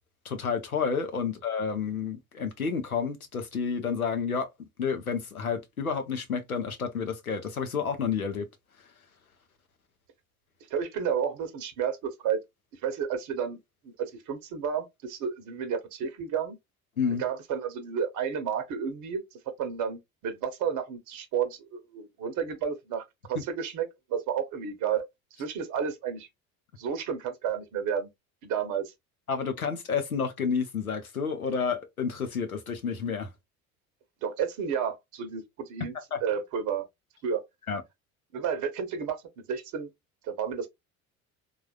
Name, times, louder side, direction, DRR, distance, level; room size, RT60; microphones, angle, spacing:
voice 1, 0.2-4.5 4.8-8.5 17.0-17.2 29.3-33.3 36.1-36.2 37.7-37.8, left 6 dB, 90° left, 0.6 m, -30 dB
voice 2, 10.7-12.4 12.8-13.6 14.0-16.6 17.2-19.2 19.6-23.0 23.3-25.0 25.4-26.3 26.8-28.1 28.4-28.9 34.2-35.9 36.2-36.9 37.2-37.4 38.3-39.9 40.2-40.7, right 7 dB, 45° right, 0.7 m, -31 dB
3.5 x 2.3 x 2.2 m
figure-of-eight pair, 55°, 42 cm